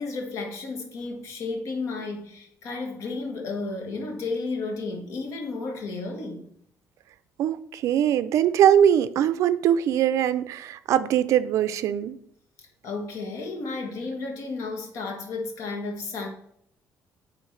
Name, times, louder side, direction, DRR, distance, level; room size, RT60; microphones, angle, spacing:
voice 1, 0.0-6.5 12.6-16.3, left 3 dB, 60° left, 1.3 m, -33 dB
voice 2, 7.4-12.2, right 10 dB, 65° right, 0.4 m, -22 dB
9.1 x 3.6 x 3.2 m
cardioid pair, 175°, 6 cm